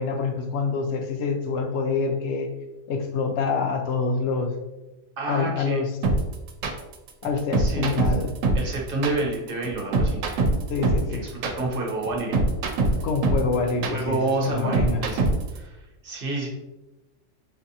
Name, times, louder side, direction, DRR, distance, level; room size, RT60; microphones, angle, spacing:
voice 1, 0.0-2.5 2.9-4.5 5.3-5.9 7.2-8.4 10.7-11.3 13.0-15.0, left 4 dB, 70° left, 5 dB, 0.8 m, -26 dB
voice 2, 5.2-5.8 7.6-8.1 8.5-10.2 11.1-12.4 13.9-15.8 16.0-16.5, right 2 dB, 50° right, -2 dB, 0.9 m, -29 dB
sound 1, 6.0-15.6, right 2 dB, 90° right, 1.0 m, -23 dB
4.5 x 2.4 x 2.7 m, 1.0 s
omnidirectional pair, 1.3 m